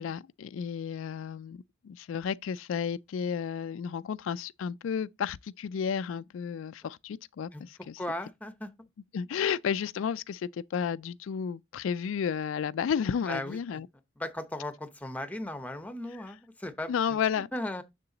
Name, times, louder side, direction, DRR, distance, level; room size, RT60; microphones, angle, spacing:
voice 1, 0.0-8.0 9.1-13.9 16.9-17.5, left 7 dB, 80° left, 0.3 m, -32 dB
voice 2, 8.0-8.7 13.3-13.8 14.2-17.8, left 1 dB, 10° left, 0.8 m, -37 dB
6.9 x 6.6 x 3.9 m
head